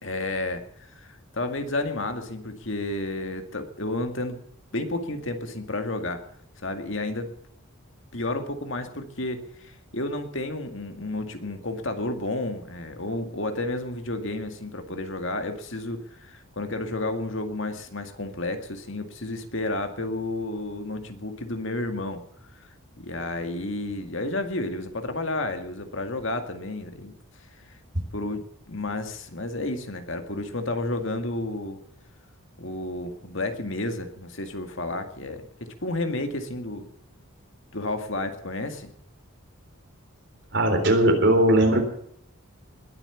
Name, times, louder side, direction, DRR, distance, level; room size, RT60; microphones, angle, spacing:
voice 1, 0.0-4.4 4.7-6.2 6.6-7.3 8.1-22.2 23.0-27.1 27.7-27.8 28.1-31.8 32.6-36.9 37.7-38.9, left 2 dB, 55° left, 6 dB, 2.1 m, -31 dB
voice 2, 40.5-41.8, right 1 dB, 50° right, 4 dB, 3.9 m, -19 dB
21.0 x 9.0 x 7.1 m, 0.67 s
head